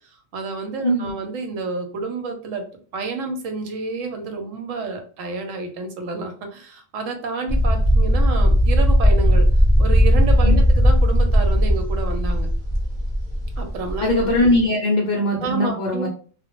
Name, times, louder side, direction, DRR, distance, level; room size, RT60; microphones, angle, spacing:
voice 1, 0.3-2.7 2.9-9.5 9.8-12.5 13.6-14.1 15.4-16.1, right 3 dB, 85° right, 5 dB, 1.0 m, -29 dB
sound 1, 7.5-14.6, equal, 45° right, 0.3 m, -17 dB
voice 2, 14.0-16.1, left 1 dB, 70° left, -1 dB, 0.4 m, -20 dB
2.3 x 2.0 x 2.9 m, 0.43 s
omnidirectional pair, 1.3 m